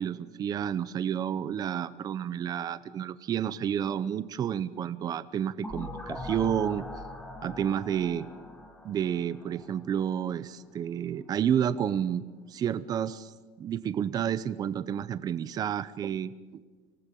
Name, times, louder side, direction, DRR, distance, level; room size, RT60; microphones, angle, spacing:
voice 1, 0.0-6.8 7.4-8.3 8.8-13.3 13.6-16.3, right 9 dB, 25° right, 16 dB, 0.7 m, -30 dB
sound 1, 5.6-10.3, left 1 dB, 5° left, 2.6 m, -42 dB
25.0 x 18.5 x 7.6 m, 1.4 s
cardioid pair, 165°, 14 cm